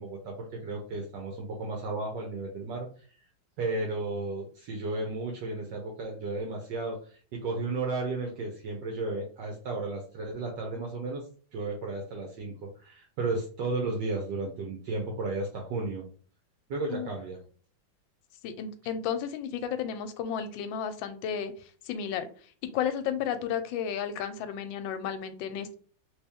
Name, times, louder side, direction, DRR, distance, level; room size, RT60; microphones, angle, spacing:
voice 1, 0.0-2.9 3.6-11.3 11.5-16.1 16.7-17.4, right 3 dB, 70° right, 1 dB, 1.3 m, -34 dB
voice 2, 18.4-21.5 21.9-22.3 22.6-25.8, left 8 dB, 75° left, 10 dB, 1.3 m, -33 dB
3.1 x 3.0 x 3.4 m, 0.43 s
omnidirectional pair, 2.2 m